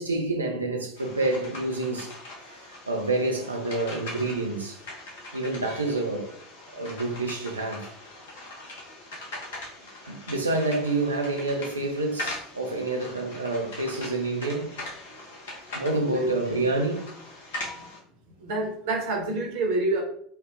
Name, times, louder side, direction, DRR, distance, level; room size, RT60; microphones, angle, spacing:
voice 1, 0.0-2.1 2.9-4.8 5.3-6.3 6.7-7.9 10.1-14.8 15.7-17.1, right 2 dB, 85° right, 0.6 m, -28 dB
sound 1, 0.9-18.0, left 1 dB, 65° left, 0.9 m, -41 dB
voice 2, 16.1-16.8 17.7-17.9 18.4-20.0, right 2 dB, 60° right, 1.0 m, -28 dB
3.3 x 2.2 x 3.5 m
figure-of-eight pair, 75°, 0 cm